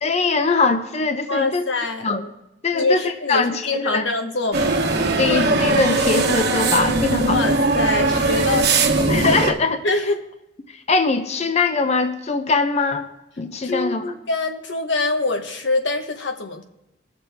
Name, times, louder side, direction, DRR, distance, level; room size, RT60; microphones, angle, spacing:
voice 1, 0.0-1.6 2.0-2.3 2.6-3.0 3.3-4.1 5.2-7.4 9.1-9.8 10.7-13.1 13.4-14.0, left 4 dB, 35° left, 8 dB, 0.6 m, -21 dB
voice 2, 1.3-2.1 2.7-4.7 7.3-9.3 9.8-10.2 13.6-16.6, left 3 dB, 85° left, 6 dB, 1.1 m, -24 dB
sound 1, 4.5-9.5, right 3 dB, 60° right, 1.2 m, -19 dB
20.5 x 6.8 x 3.4 m, 0.93 s
head